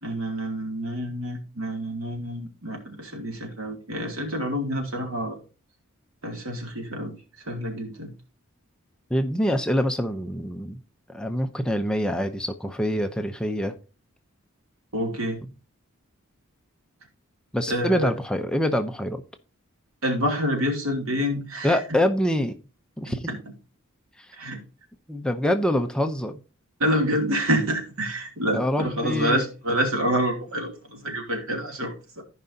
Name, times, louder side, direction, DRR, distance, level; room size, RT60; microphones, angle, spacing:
voice 1, 0.0-5.4 6.2-7.1 7.5-8.1 14.9-15.4 17.7-18.1 20.0-21.8 23.1-23.2 24.4-24.6 26.8-32.2, equal, 75° right, 2.7 m, -27 dB
voice 2, 9.1-10.8 11.1-13.7 17.5-19.2 21.6-22.5 23.0-23.3 24.2-24.4 25.1-26.4 28.5-29.4, equal, 5° left, 0.6 m, -25 dB
14.5 x 5.3 x 2.8 m
head